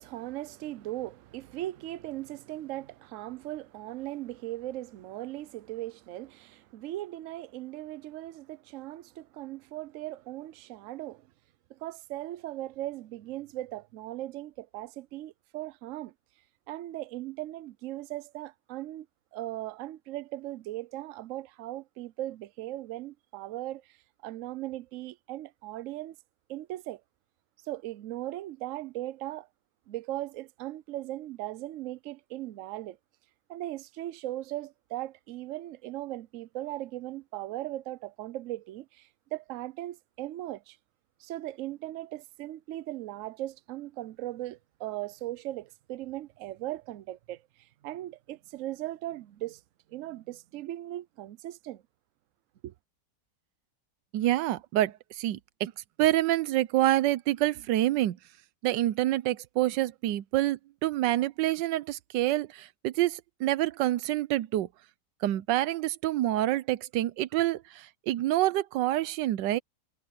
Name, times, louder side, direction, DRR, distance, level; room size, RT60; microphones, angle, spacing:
voice 1, 0.0-11.3 11.7-16.1 16.7-19.1 19.3-24.0 24.2-26.2 26.5-27.0 27.6-29.5 29.9-33.0 33.5-40.8 41.2-49.6 49.9-51.8 52.6-52.7, right 15 dB, 65° right, 0.8 m, -38 dB
voice 2, 54.1-55.7 56.0-58.2 58.6-64.7 65.2-69.6, right 15 dB, 90° right, 1.3 m, -27 dB
omnidirectional pair, 1.9 m